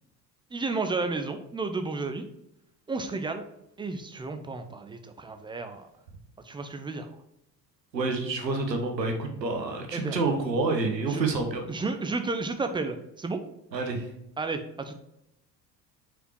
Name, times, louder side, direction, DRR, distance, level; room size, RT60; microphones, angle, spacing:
voice 1, 0.5-2.3 2.9-3.4 3.8-5.9 6.4-7.1 9.9-10.2 11.1-11.2 11.7-13.4 14.4-15.0, right 3 dB, 10° right, 7 dB, 0.5 m, -32 dB
voice 2, 7.9-11.6 13.7-14.1, right 3 dB, 85° right, 4 dB, 0.9 m, -28 dB
4.9 x 4.4 x 4.5 m, 0.84 s
figure-of-eight pair, 60°, 49 cm